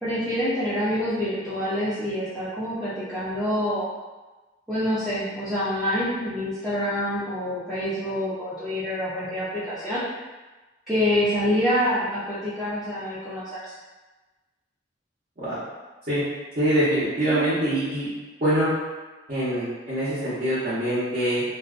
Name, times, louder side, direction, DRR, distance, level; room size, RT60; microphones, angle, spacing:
voice 1, 0.0-3.9 4.7-10.0 10.9-13.7 17.3-17.4, equal, ahead, -15 dB, 0.5 m, -26 dB
voice 2, 16.6-18.1 18.4-18.7 19.3-21.4, right 1 dB, 40° right, -13 dB, 0.7 m, -24 dB
2.5 x 2.1 x 2.3 m, 1.2 s
head